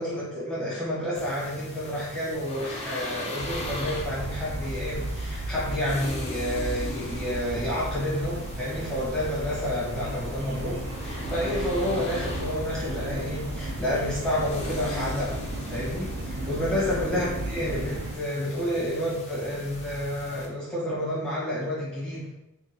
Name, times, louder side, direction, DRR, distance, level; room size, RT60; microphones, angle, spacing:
voice 1, 0.0-15.4 15.7-22.3, left 1 dB, 5° left, -9 dB, 1.2 m, -30 dB
sound 1, 1.1-20.5, left 1 dB, 30° left, 0.5 m, -40 dB
sound 2, 3.4-18.2, right 1 dB, 60° right, 0.4 m, -34 dB
3.7 x 2.3 x 2.9 m, 0.89 s
head